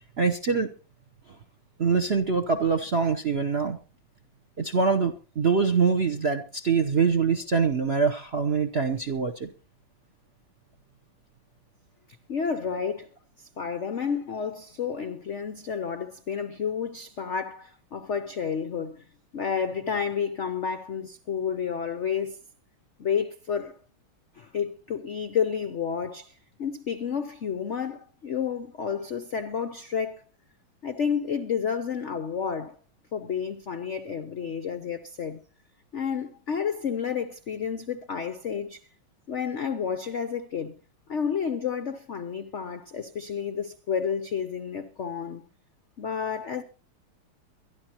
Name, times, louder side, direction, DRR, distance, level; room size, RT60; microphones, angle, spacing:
voice 1, 0.2-0.7 1.8-3.8 4.6-9.5, right 5 dB, 50° right, 0.7 m, -24 dB
voice 2, 12.3-13.1 13.4-19.1 19.3-22.4 23.0-23.8 24.3-30.2 30.8-32.8 33.1-35.4 35.9-38.8 39.3-40.8 41.1-45.5 46.0-46.6, left 7 dB, 65° left, 0.7 m, -30 dB
23.0 x 11.5 x 2.9 m
omnidirectional pair, 2.2 m